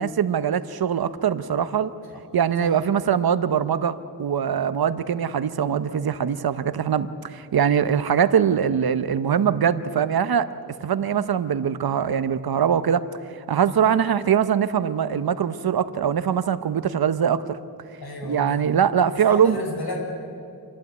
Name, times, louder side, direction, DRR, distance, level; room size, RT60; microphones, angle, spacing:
voice 1, 0.0-1.9 2.3-10.5 10.8-13.0 13.5-17.6 18.2-19.6, right 8 dB, 65° right, 13 dB, 0.9 m, -22 dB
voice 2, 18.0-18.7 19.3-20.0, left 1 dB, 70° left, 0 dB, 6.2 m, -32 dB
28.0 x 11.5 x 9.3 m, 2.5 s
wide cardioid pair, 95°, 40 cm